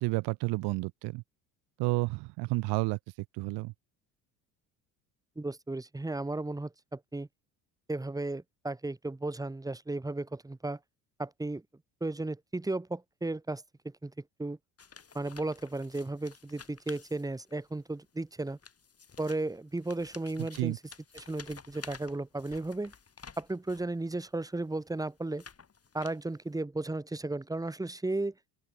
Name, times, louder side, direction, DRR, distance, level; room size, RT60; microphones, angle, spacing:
voice 1, 0.0-1.2 1.8-3.0 3.4-3.7 20.4-20.8, right 24 dB, 55° right, 0.8 m, -31 dB
voice 2, 5.4-7.3 7.9-10.8 11.2-11.6 12.0-14.1 14.4-14.6 15.1-18.6 19.2-20.7 21.1-22.9 23.4-25.4 25.9-28.3, right 2 dB, 5° right, 1.2 m, -35 dB
sound 1, 14.8-17.7 18.4-23.9 24.6-26.5, left 6 dB, 30° left, 4.7 m, -52 dB
open air
hypercardioid pair, 60°, 48 cm